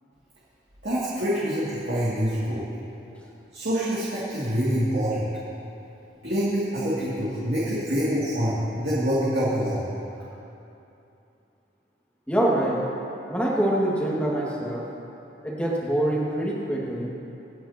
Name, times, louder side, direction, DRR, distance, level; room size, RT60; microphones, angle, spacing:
voice 1, 0.8-2.6 3.5-5.3 6.2-9.9, equal, 60° right, -10 dB, 2.5 m, -26 dB
voice 2, 12.3-12.8 13.3-14.8 15.4-17.1, right 1 dB, 5° left, -5 dB, 2.0 m, -25 dB
26.5 x 9.1 x 2.9 m, 2.8 s
head